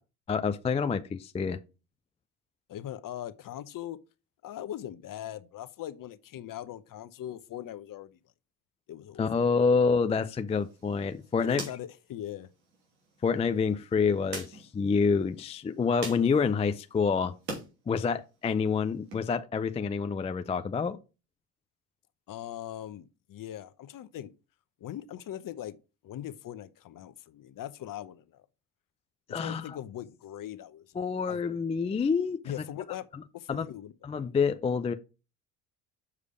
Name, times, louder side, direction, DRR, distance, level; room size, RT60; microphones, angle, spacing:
voice 1, 0.3-1.6 9.2-11.6 13.2-17.3 17.9-21.0 29.3-29.6 31.0-32.4 33.5-33.7 34.0-34.9, left 5 dB, 15° left, 0.4 m, -27 dB
voice 2, 2.7-4.0 4.4-8.2 8.9-9.5 11.4-12.5 22.3-24.3 24.8-25.8 26.0-28.4 29.3-31.4 32.4-34.3, left 11 dB, 40° left, 0.9 m, -41 dB
sound 1, 10.5-17.7 18.0-19.2, right 3 dB, 85° right, 2.8 m, -45 dB
7.0 x 4.9 x 4.9 m
hypercardioid pair, 65°, 48 cm